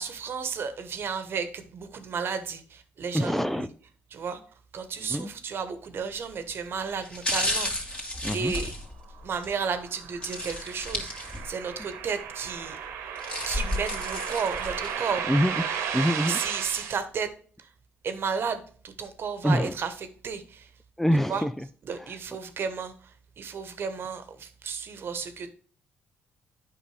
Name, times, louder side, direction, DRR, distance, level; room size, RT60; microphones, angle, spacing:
voice 1, 0.0-3.7 4.1-4.4 4.7-8.1 8.3-8.7 9.2-12.8 13.5-15.3 16.3-17.3 17.6-17.7 18.0-19.9 20.2-20.7 21.3-21.4 21.8-25.5, right 6 dB, 55° right, 10 dB, 1.2 m, -33 dB
voice 2, 3.1-3.7 5.0-5.3 8.2-8.5 15.3-15.6 15.9-16.4 19.4-19.7 21.0-21.6, equal, 5° left, 13 dB, 0.5 m, -25 dB
sound 1, 6.0-6.3 7.0-9.5 10.2-11.7 12.0-12.1 12.9-15.1 15.6-15.7, left 1 dB, 25° left, 2.5 m, -32 dB
sound 2, 9.1-17.0, right 8 dB, 80° right, 1.3 m, -34 dB
8.3 x 5.5 x 3.3 m, 0.43 s
supercardioid pair, 65°, 5 cm